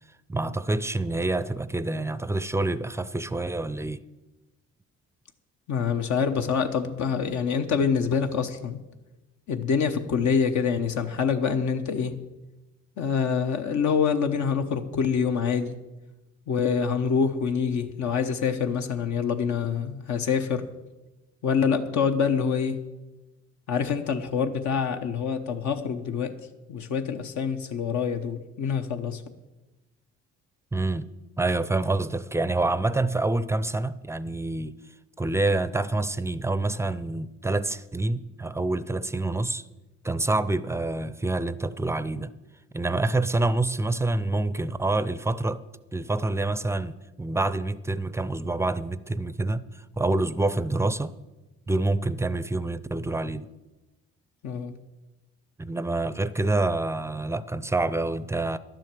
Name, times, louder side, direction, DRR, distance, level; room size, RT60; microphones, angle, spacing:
voice 1, 0.3-4.0 30.7-31.1 31.4-34.7 35.2-39.6 40.0-42.3 42.7-45.6 45.9-51.1 51.7-53.5 55.6-58.6, right 2 dB, 10° right, 0.4 m, -27 dB
voice 2, 5.7-8.8 9.5-12.2 13.0-15.8 16.5-20.7 21.4-22.8 23.7-26.3 26.7-29.2 54.4-54.7, left 6 dB, 70° left, 1.0 m, -26 dB
11.5 x 7.5 x 7.5 m
cardioid pair, 90°, 30 cm